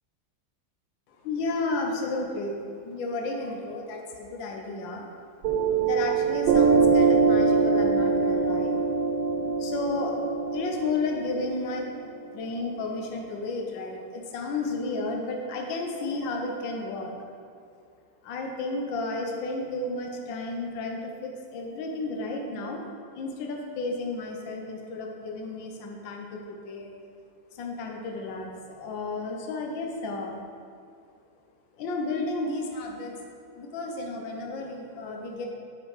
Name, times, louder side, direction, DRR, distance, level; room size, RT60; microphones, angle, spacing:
voice 1, 1.1-2.6 2.8-5.1 5.8-8.8 9.6-10.1 10.5-17.3 18.2-22.9 23.1-26.9 27.5-30.4 31.8-33.1 33.6-35.5, left 3 dB, 70° left, 1 dB, 1.6 m, -32 dB
Piano, 5.4-12.5, right 4 dB, 75° right, 1.5 m, -23 dB
8.9 x 5.7 x 4.8 m, 2.3 s
omnidirectional pair, 2.2 m